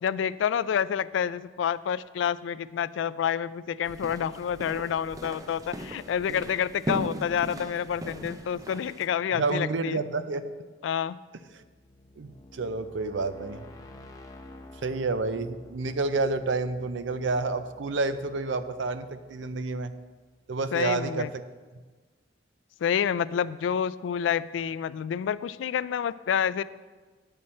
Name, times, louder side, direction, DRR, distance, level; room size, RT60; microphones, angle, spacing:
voice 1, 0.0-10.0 10.8-11.2 20.7-21.3 22.8-26.6, left 8 dB, 85° left, 16 dB, 0.3 m, -28 dB
sound 1, 3.8-9.1, equal, 20° right, 0.5 m, -38 dB
voice 2, 9.4-10.5 11.5-11.6 12.2-13.6 14.8-19.9 20.5-21.4, right 3 dB, 85° right, 11 dB, 0.5 m, -29 dB
sound 2, 11.3-20.1, left 1 dB, 20° left, 0.7 m, -51 dB
9.9 x 7.7 x 4.3 m, 1.4 s
head